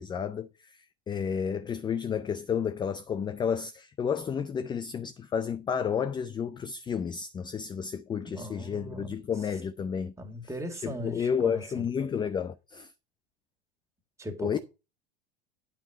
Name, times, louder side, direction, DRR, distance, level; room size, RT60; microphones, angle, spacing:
voice 1, 0.0-10.1 10.8-12.9 14.4-14.6, left 7 dB, 15° left, 0.4 m, -31 dB
voice 2, 8.2-9.2 10.2-11.9 14.2-14.6, equal, 10° right, 2.1 m, -39 dB
9.0 x 4.3 x 6.2 m
hypercardioid pair, 80°, 29 cm